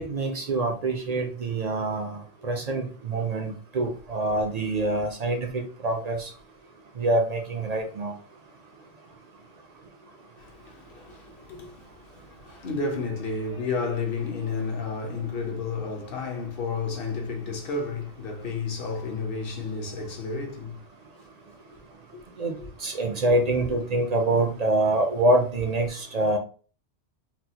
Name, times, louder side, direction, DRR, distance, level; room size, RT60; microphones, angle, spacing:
voice 1, 0.0-6.3 7.0-8.1 22.4-22.5 22.8-26.4, right 2 dB, 55° right, 0.5 m, -25 dB
voice 2, 10.4-20.8 22.1-22.2 22.6-22.7, left 4 dB, 60° left, 1.0 m, -32 dB
4.2 x 2.0 x 2.7 m
omnidirectional pair, 1.1 m